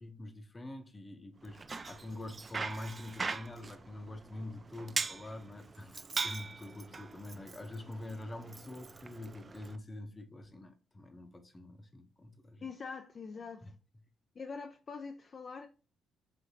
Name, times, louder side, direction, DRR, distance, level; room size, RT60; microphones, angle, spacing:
voice 1, 0.0-12.7 13.6-13.7, left 1 dB, 25° left, 0.7 m, -45 dB
Bicycle, 1.4-9.8, right 4 dB, 35° right, 0.3 m, -41 dB
voice 2, 12.6-13.7 14.4-15.7, left 5 dB, 40° left, 0.3 m, -44 dB
5.0 x 2.8 x 2.7 m
cardioid pair, 90°, 0 cm